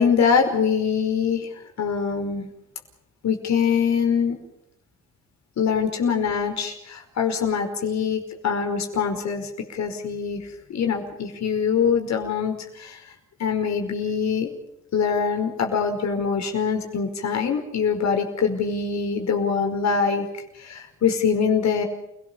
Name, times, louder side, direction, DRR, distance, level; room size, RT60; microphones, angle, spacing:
voice 1, 0.0-2.5 3.2-4.4 5.6-13.0 13.4-14.5 14.9-20.3 20.6-21.9, left 6 dB, 65° left, 4 dB, 5.2 m, -24 dB
29.0 x 18.0 x 7.1 m, 0.81 s
cardioid pair, 90°, 30 cm